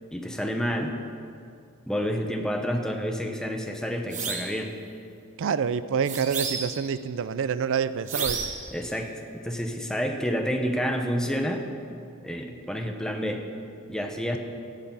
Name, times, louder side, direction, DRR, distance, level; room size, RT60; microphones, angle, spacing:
voice 1, 0.1-0.9 1.9-4.7 8.7-9.1 9.4-11.7 12.2-13.4 13.9-14.4, equal, 5° left, 3 dB, 0.9 m, -29 dB
sound 1, 4.1-4.6 6.1-6.9 8.1-8.7, right 5 dB, 35° right, 1.2 m, -31 dB
voice 2, 5.4-8.5, right 6 dB, 60° right, 14 dB, 0.4 m, -27 dB
18.0 x 6.8 x 5.5 m, 2.5 s
head